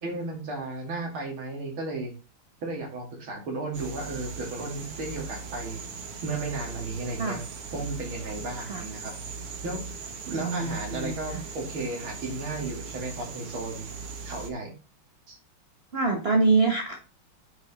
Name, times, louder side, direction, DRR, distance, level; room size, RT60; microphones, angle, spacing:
voice 1, 0.0-2.1 2.6-5.8 6.2-7.4 7.7-9.1 9.6-9.8 10.3-13.9 14.2-14.7 15.3-15.4, right 2 dB, 70° right, 1 dB, 3.2 m, -34 dB
sound 1, 3.7-14.5, right 5 dB, 85° right, 2.3 m, -39 dB
voice 2, 10.4-11.4 15.9-16.9, right 3 dB, 35° right, 2 dB, 1.1 m, -25 dB
8.2 x 5.2 x 4.1 m, 0.33 s
omnidirectional pair, 2.4 m